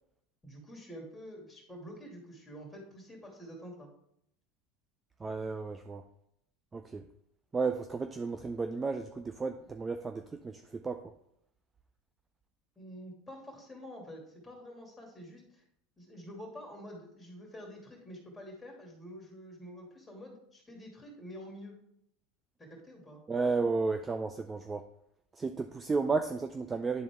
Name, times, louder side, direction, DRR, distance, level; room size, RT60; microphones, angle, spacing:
voice 1, 0.4-3.9 12.8-15.6 16.0-21.8 22.6-23.2, equal, 10° left, 2.5 m, -48 dB
voice 2, 5.2-6.0 6.7-7.1 7.5-11.1 23.3-24.9 25.3-27.0, right 4 dB, 20° right, 0.4 m, -33 dB
10.0 x 4.0 x 3.5 m
supercardioid pair, 105°, 0 cm